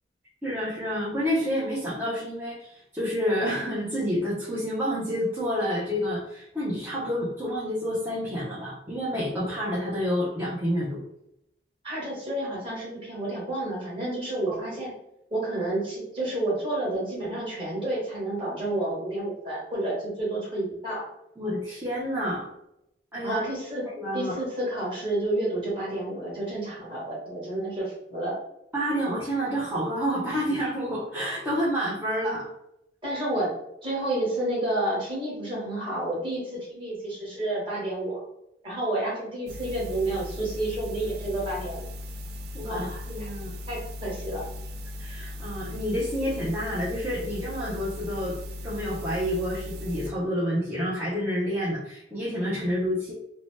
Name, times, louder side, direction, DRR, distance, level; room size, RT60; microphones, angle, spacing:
voice 1, 0.4-11.0 14.5-14.6 21.4-22.5 23.1-23.4 24.0-24.4 28.7-32.5 42.5-43.5 45.0-48.4 48.6-53.1, equal, 10° right, -9 dB, 0.6 m, -29 dB
voice 2, 11.8-14.9 15.3-21.1 23.2-23.8 24.1-28.4 33.0-33.5 33.8-38.2 38.6-41.9 42.7-43.3 43.7-44.4, right 1 dB, 30° right, -6 dB, 1.2 m, -30 dB
sound 1, 39.5-50.1, left 1 dB, 60° right, 0.3 m, -38 dB
2.7 x 2.0 x 3.1 m, 0.82 s
head